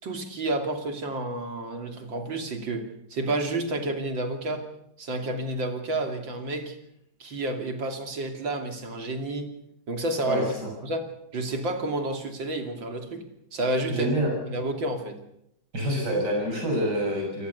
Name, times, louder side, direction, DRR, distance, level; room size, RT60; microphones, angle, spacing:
voice 1, 0.0-4.7 5.0-6.8 7.2-9.5 9.9-10.5 10.8-13.2 13.5-14.1 14.5-15.2, right 2 dB, 75° right, 5 dB, 3.5 m, -30 dB
voice 2, 10.3-10.7 13.9-14.3 15.7-17.5, right 1 dB, 60° right, 0 dB, 7.3 m, -27 dB
29.0 x 18.0 x 7.1 m, 0.79 s
omnidirectional pair, 2.1 m